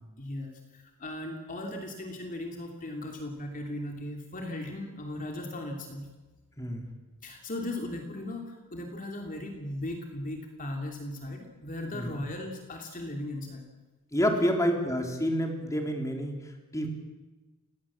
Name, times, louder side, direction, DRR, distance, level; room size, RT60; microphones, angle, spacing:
voice 1, 0.2-6.1 7.2-13.7, left 1 dB, 40° left, 2 dB, 2.9 m, -37 dB
voice 2, 6.6-6.9 11.9-12.2 14.1-16.9, equal, 15° left, 2 dB, 3.6 m, -28 dB
29.5 x 18.5 x 7.5 m, 1.2 s
head